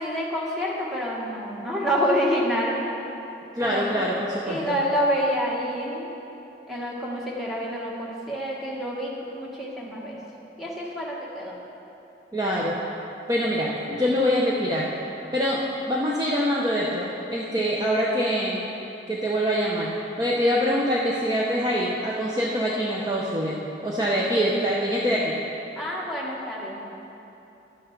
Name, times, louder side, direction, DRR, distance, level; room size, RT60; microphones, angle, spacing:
voice 1, 0.0-2.8 3.6-4.1 4.5-6.1 6.7-10.2 10.6-11.6 25.8-27.0, equal, ahead, -5 dB, 1.4 m, -28 dB
voice 2, 3.5-4.8 12.3-12.8 13.3-14.9 15.3-18.7 19.1-19.9 20.2-25.4, equal, 20° right, -5 dB, 0.7 m, -24 dB
11.5 x 6.3 x 5.8 m, 2.9 s
head